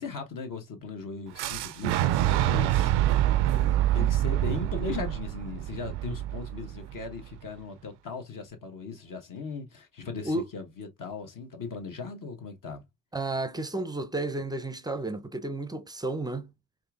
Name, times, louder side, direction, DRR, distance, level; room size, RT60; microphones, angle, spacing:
voice 1, 0.0-2.9 3.9-12.8, left 4 dB, 45° left, 1.3 m, -38 dB
Fire / Explosion, 1.4-7.3, right 13 dB, 65° right, 0.5 m, -26 dB
voice 2, 3.5-4.2 10.2-10.5 13.1-16.5, right 2 dB, 10° right, 0.6 m, -32 dB
4.3 x 2.5 x 2.4 m
hypercardioid pair, 45°, 45 cm